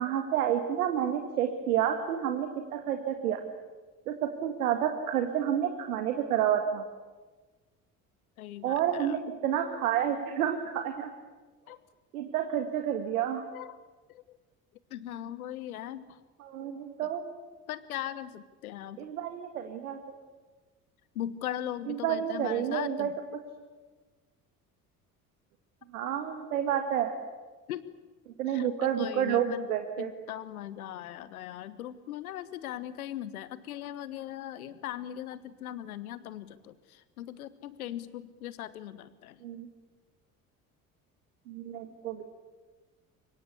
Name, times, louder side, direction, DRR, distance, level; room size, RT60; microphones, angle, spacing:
voice 1, 0.0-3.4 4.1-6.9 8.6-11.1 12.1-13.5 16.4-17.2 19.0-20.0 21.9-23.1 25.9-27.1 28.4-30.1 39.4-39.7 41.5-42.2, right 9 dB, 75° right, 6 dB, 1.8 m, -29 dB
voice 2, 8.4-9.2 11.7-11.8 13.5-13.8 14.1-14.4 14.9-16.2 17.0-17.1 17.7-19.1 21.1-23.1 27.7-27.9 28.5-29.7 30.0-39.4, left 12 dB, 75° left, 16 dB, 1.3 m, -39 dB
24.5 x 23.0 x 8.2 m, 1.3 s
figure-of-eight pair, 55°, 44 cm